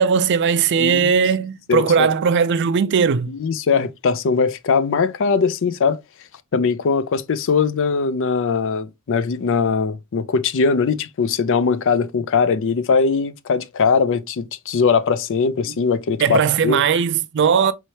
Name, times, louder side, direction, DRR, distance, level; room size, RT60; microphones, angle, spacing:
voice 1, 0.0-3.3 16.2-17.7, right 6 dB, 55° right, 0.4 m, -18 dB
voice 2, 0.8-1.1 1.7-2.1 3.3-6.0 6.5-16.8, left 5 dB, 60° left, 0.4 m, -20 dB
4.3 x 3.2 x 2.8 m
head